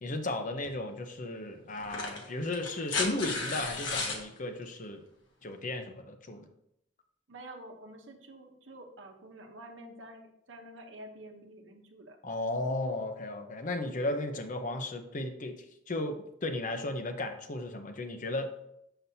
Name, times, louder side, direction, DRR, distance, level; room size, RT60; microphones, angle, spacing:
voice 1, 0.0-5.0 5.4-6.5 12.2-15.5 15.9-18.5, left 2 dB, 40° left, 6 dB, 0.7 m, -35 dB
sound 1, 0.6-0.8 1.8-4.2 5.7-5.8, left 3 dB, 70° left, 1.2 m, -34 dB
voice 2, 7.3-12.2 14.0-14.1, right 1 dB, 75° right, 4 dB, 0.9 m, -49 dB
6.8 x 5.9 x 2.7 m, 0.77 s
head